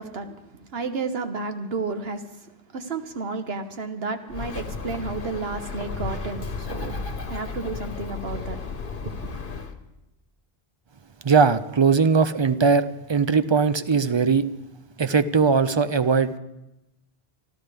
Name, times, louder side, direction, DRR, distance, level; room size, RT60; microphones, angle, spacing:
voice 1, 0.0-7.0 7.3-8.6 9.0-9.3, right 4 dB, 70° right, 7 dB, 1.4 m, -32 dB
Bird, 4.3-9.7, left 4 dB, 55° left, 1.4 m, -33 dB
voice 2, 11.2-14.5 15.0-16.3, right 5 dB, 40° right, 13 dB, 0.4 m, -20 dB
26.0 x 13.0 x 3.4 m, 0.95 s
omnidirectional pair, 1.1 m